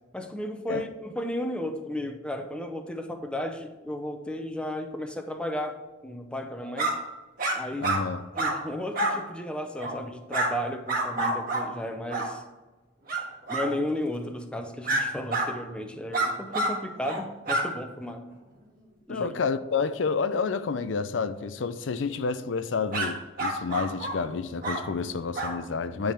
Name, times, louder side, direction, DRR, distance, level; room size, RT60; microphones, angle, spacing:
voice 1, 0.1-6.9 7.5-7.9 8.4-12.4 13.5-18.2 19.1-19.3, left 1 dB, 5° left, 0.6 m, -34 dB
sound 1, 6.8-6.9 7.4-7.6 7.8-8.0 8.3-8.5 8.9-9.1 9.8-10.0 10.3-10.5 10.9-11.7 12.1-12.3 13.1-13.2 13.5-13.7 14.8-15.0 15.3-15.5 16.1-16.7 17.0-17.2 17.5-17.7 22.9-23.1 23.4-24.2 24.6-24.8 25.3-25.5, right 2 dB, 50° right, 1.7 m, -27 dB
voice 2, 7.8-8.2 19.1-26.1, left 5 dB, 75° left, 0.5 m, -29 dB
10.0 x 3.7 x 5.8 m
head